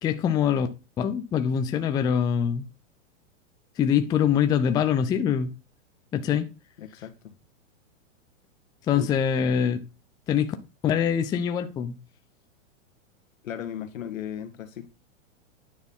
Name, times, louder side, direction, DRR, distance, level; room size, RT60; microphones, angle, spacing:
voice 1, 0.0-0.7 1.0-2.7 3.8-5.5 6.1-6.5 8.9-9.8 10.3-10.5 10.8-11.9, left 8 dB, 10° left, 0.4 m, -24 dB
voice 2, 6.8-7.3 8.9-9.1 13.4-14.9, left 10 dB, 80° left, 1.7 m, -36 dB
9.6 x 4.2 x 5.4 m
hypercardioid pair, 130°, 39 cm